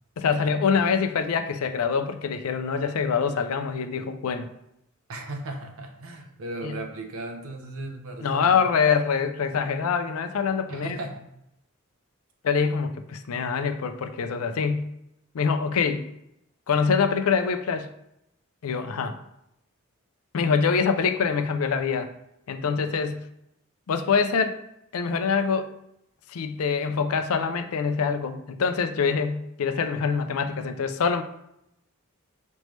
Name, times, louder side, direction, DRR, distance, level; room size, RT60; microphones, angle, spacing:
voice 1, 0.2-4.5 6.6-6.7 8.2-11.0 12.4-14.9 15.3-16.1 16.7-17.9 18.6-19.2 20.3-22.1 22.5-23.2 23.9-24.6 24.9-25.7 26.3-31.2, left 5 dB, 75° left, 8 dB, 0.4 m, -25 dB
voice 2, 5.1-8.7 10.7-11.3, right 2 dB, 70° right, 3 dB, 0.8 m, -36 dB
5.2 x 3.3 x 3.1 m, 0.80 s
head